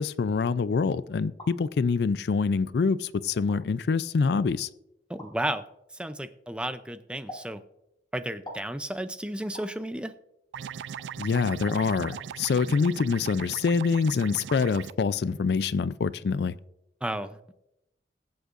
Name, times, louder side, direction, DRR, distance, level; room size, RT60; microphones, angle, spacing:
voice 1, 0.0-4.7 11.2-16.5, left 5 dB, 65° left, 17 dB, 0.4 m, -25 dB
sound 1, 1.1-1.5 2.4-2.5 3.3-3.6 5.2-5.3 7.3-7.5 8.5-8.7 9.5-9.7 11.0-11.1 11.7-11.8 12.1-12.2, equal, 25° left, 2.3 m, -43 dB
voice 2, 5.1-5.6 5.9-7.6 8.1-10.1 17.0-17.4, right 1 dB, 5° right, 11 dB, 0.4 m, -33 dB
sound 2, 10.5-14.9, right 8 dB, 90° right, 0.3 m, -39 dB
21.5 x 8.0 x 2.5 m, 0.85 s
head